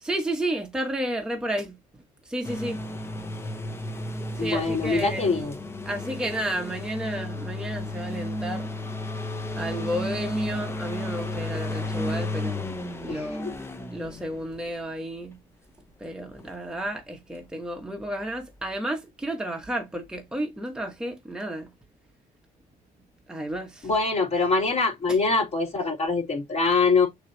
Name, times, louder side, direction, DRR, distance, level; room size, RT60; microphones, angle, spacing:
voice 1, 0.0-1.8 2.2-2.8 4.4-5.2 5.8-8.7 9.6-12.7 13.0-13.5 13.9-15.4 16.0-21.7 23.3-23.9 25.1-25.2, right 1 dB, 5° right, 1.1 m, -32 dB
sound 1, 2.4-14.7 16.4-16.5, left 1 dB, 15° left, 1.0 m, -33 dB
voice 2, 4.4-5.5 13.1-13.5 23.8-27.1, left 4 dB, 40° left, 3.3 m, -24 dB
6.4 x 2.9 x 2.8 m
cardioid pair, 110°, 17 cm